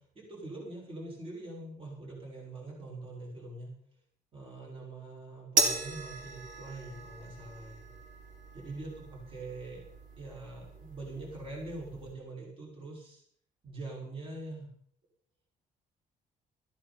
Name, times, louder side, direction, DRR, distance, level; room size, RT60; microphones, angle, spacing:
voice 1, 0.1-3.7 4.3-7.9 8.5-9.8 10.2-13.2 13.6-14.7, right 2 dB, 40° right, -3 dB, 5.9 m, -43 dB
sound 1, 5.6-12.1, right 3 dB, 65° right, 3.3 m, -36 dB
14.0 x 13.5 x 4.4 m, 0.63 s
cardioid pair, 130°, 15 cm